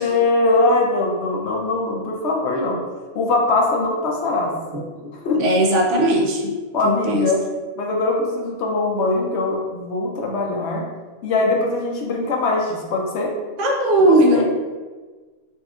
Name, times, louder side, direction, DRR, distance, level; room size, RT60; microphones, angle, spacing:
voice 1, 0.0-2.8 3.1-4.5 5.2-5.4 6.7-7.4 7.8-10.8 11.2-13.3 14.1-14.4, left 2 dB, 70° left, 0 dB, 0.9 m, -21 dB
voice 2, 5.3-6.5 6.8-7.3 13.6-14.4, right 1 dB, 80° right, 0 dB, 1.0 m, -18 dB
4.1 x 2.4 x 2.3 m, 1.3 s
omnidirectional pair, 1.2 m